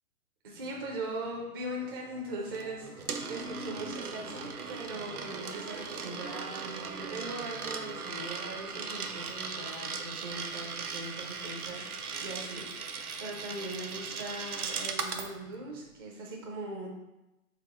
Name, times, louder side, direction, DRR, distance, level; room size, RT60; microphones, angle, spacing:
voice 1, 0.4-2.9 3.3-11.9 12.2-16.9, right 2 dB, 15° right, -2 dB, 0.5 m, -40 dB
sound 1, 0.5-15.8, left 3 dB, 85° left, 1.5 m, -53 dB
Coin (dropping), 2.5-15.3, right 5 dB, 85° right, 0.6 m, -38 dB
4.1 x 3.6 x 3.6 m, 0.95 s
figure-of-eight pair, 130°, 44 cm